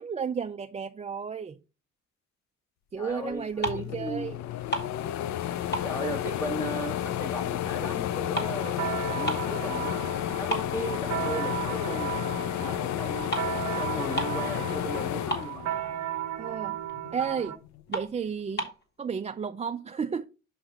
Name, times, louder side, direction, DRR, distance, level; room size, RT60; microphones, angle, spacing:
voice 1, 0.0-1.6 2.9-4.4 16.4-16.8 17.1-17.6 17.9-18.7 19.0-20.3, right 6 dB, 25° right, 0.4 m, -32 dB
voice 2, 3.0-4.3 5.8-8.7 9.1-10.0 10.4-12.1 12.6-13.3 13.7-15.6, equal, 10° left, 1.3 m, -36 dB
sound 1, 3.3-3.4 3.7-16.3 16.7-17.8, left 11 dB, 65° left, 0.5 m, -31 dB
sound 2, 3.4-4.0 4.3-5.4 5.7-7.2 7.6-9.6 10.0-10.1 10.5-11.6 12.0-12.2 13.0-13.1 13.3-13.6 13.8-13.9 14.1-14.5 14.8-14.9 15.1-15.9 16.4-16.5 16.9-17.0 17.4-17.5 17.9-18.8, right 1 dB, 35° left, 2.2 m, -34 dB
sound 3, 8.4-17.6, right 12 dB, 65° right, 0.8 m, -35 dB
5.9 x 5.7 x 3.8 m
cardioid pair, 90°, 30 cm